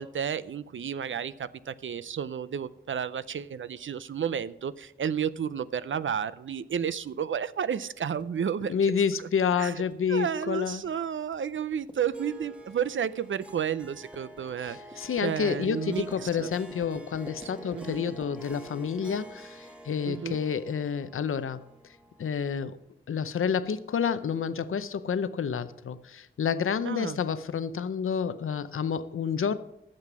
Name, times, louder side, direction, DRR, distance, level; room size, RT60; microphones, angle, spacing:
voice 1, 0.0-8.7 9.2-9.3 9.6-9.7 10.1-16.5 17.4-18.0 20.1-20.4 26.9-27.2, right 8 dB, 70° right, 16 dB, 0.5 m, -32 dB
sound 1, 8.1-19.6, right 1 dB, 20° right, 1.3 m, -50 dB
voice 2, 8.7-10.8 14.6-21.6 22.2-22.8 23.1-29.6, left 6 dB, 85° left, 12 dB, 0.7 m, -29 dB
Harp, 12.1-22.7, right 1 dB, 5° right, 1.4 m, -48 dB
13.0 x 7.6 x 6.1 m, 0.81 s
wide cardioid pair, 115°, 21 cm